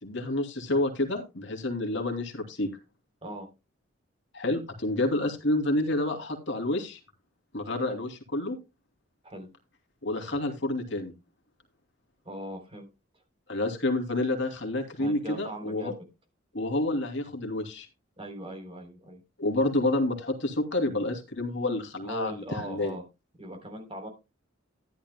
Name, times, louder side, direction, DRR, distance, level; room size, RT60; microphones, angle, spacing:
voice 1, 0.0-2.7 4.3-7.0 7.5-8.6 10.0-11.1 13.5-15.9 16.5-17.9 19.4-22.3 22.6-23.0, left 2 dB, 60° left, 4 dB, 2.7 m, -29 dB
voice 2, 12.3-12.9 15.0-15.9 18.2-19.2 22.0-23.0 23.4-24.1, right 1 dB, 30° right, 5 dB, 3.6 m, -39 dB
13.5 x 11.0 x 2.2 m, 0.26 s
head